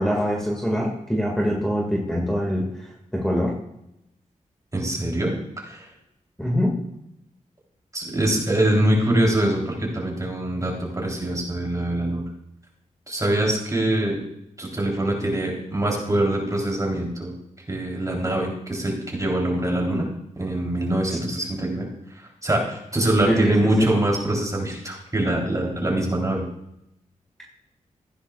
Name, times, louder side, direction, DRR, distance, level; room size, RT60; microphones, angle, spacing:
voice 1, 0.0-3.5 6.4-6.7 23.3-23.5, equal, 5° left, -2 dB, 2.1 m, -24 dB
voice 2, 4.7-5.9 7.9-12.2 13.1-14.2 14.6-17.3 17.7-20.1 20.4-21.9 22.1-26.4, right 1 dB, 25° right, -1 dB, 3.6 m, -24 dB
15.0 x 9.8 x 2.4 m, 0.81 s
cardioid pair, 75°, 13 cm